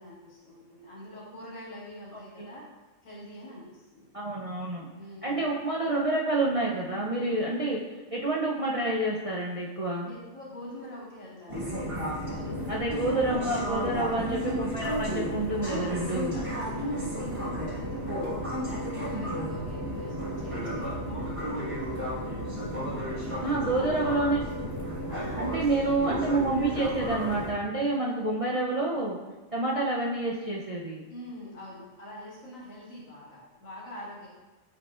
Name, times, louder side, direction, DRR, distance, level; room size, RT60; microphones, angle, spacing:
voice 1, 0.0-2.7 3.0-4.1 4.9-5.6 10.0-13.0 13.3-14.0 15.5-22.1 22.9-23.9 25.1-25.7 31.1-34.3, left 1 dB, 80° left, -7 dB, 2.3 m, -44 dB
voice 2, 2.1-2.5 4.1-4.9 5.2-7.8 8.1-10.1 12.7-16.3 23.4-24.4 25.4-29.2 29.5-31.0, right 2 dB, 45° right, -4 dB, 0.5 m, -28 dB
sound 1, 11.5-27.5, equal, 25° right, 1.4 m, -33 dB
8.5 x 4.9 x 2.4 m, 1.2 s
omnidirectional pair, 1.4 m